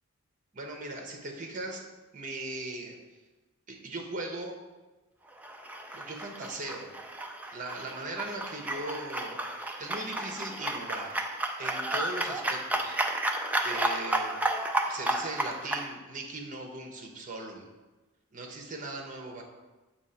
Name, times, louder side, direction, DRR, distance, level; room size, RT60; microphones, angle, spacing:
voice 1, 0.5-1.8 2.1-3.0 3.7-4.6 5.9-6.9 7.5-11.3 11.6-13.0 13.6-14.4 14.9-17.7 18.3-19.4, right 2 dB, 35° right, 2 dB, 0.9 m, -39 dB
sound 1, 5.4-15.9, right 1 dB, 5° right, 0.3 m, -32 dB
7.1 x 2.9 x 5.6 m, 1.2 s
head